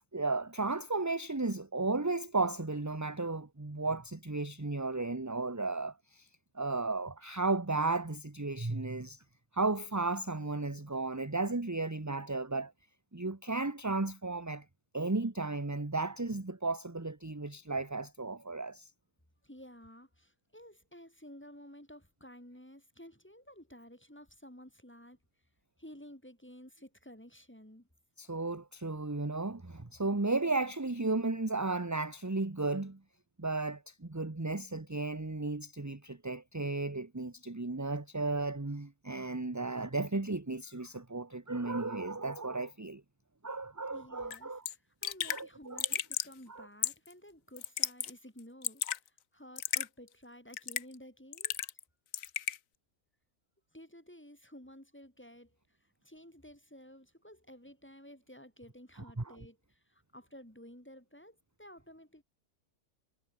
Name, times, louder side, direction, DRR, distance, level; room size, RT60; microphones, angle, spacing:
voice 1, 0.1-6.3 6.5-9.2 9.5-12.7 13.1-14.6 14.9-18.9 28.2-33.0 33.4-43.0 43.4-44.6 45.3-45.9 46.5-46.7 59.2-59.4, right 3 dB, 15° right, 1.0 m, -34 dB
voice 2, 19.4-25.2 25.8-27.9 43.9-51.6 53.7-62.2, equal, 10° left, 3.0 m, -53 dB
Raindrop / Drip, 44.3-44.4 44.7-44.8 45.0-45.4 45.8-46.3 46.8-47.1 47.6-48.1 48.4-49.0 49.6-49.9 50.5-51.0 51.3-51.8 52.1-52.6, left 10 dB, 65° left, 1.2 m, -33 dB
omnidirectional pair, 1.5 m